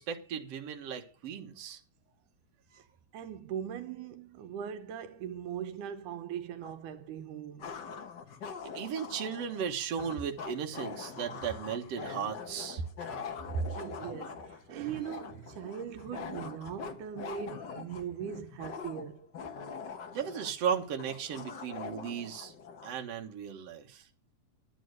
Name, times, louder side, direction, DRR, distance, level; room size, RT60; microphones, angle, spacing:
voice 1, 0.0-1.8 2.7-2.8 8.7-12.8 20.1-22.5 22.8-24.0, right 7 dB, 60° right, 2.4 m, -36 dB
voice 2, 3.1-7.7 12.8-12.9 13.5-19.3, right 7 dB, 85° right, 2.4 m, -39 dB
sound 1, 6.6-6.7 7.6-23.0, left 5 dB, 50° left, 1.3 m, -43 dB
sound 2, 10.6-12.1 13.0-13.5 14.0-14.2 14.8-16.0 16.5-16.6 17.3-18.2, equal, 70° left, 5.1 m, -52 dB
12.0 x 8.9 x 6.5 m
omnidirectional pair, 3.5 m